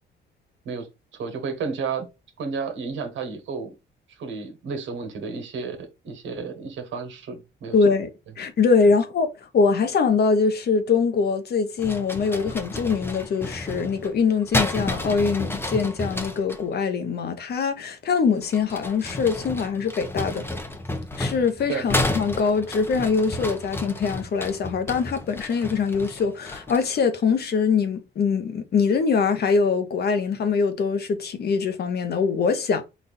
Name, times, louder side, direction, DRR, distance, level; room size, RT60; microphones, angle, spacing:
voice 1, 1.1-2.1 2.4-3.7 4.2-7.8 21.7-21.9, right 5 dB, 75° right, 1.3 m, -32 dB
voice 2, 7.7-8.1 8.4-20.4 21.2-32.8, left 5 dB, 55° left, 0.9 m, -23 dB
sound 1, 11.8-16.6 18.4-27.0, left 1 dB, 10° left, 0.8 m, -31 dB
4.1 x 2.5 x 4.1 m
cardioid pair, 90°, 20 cm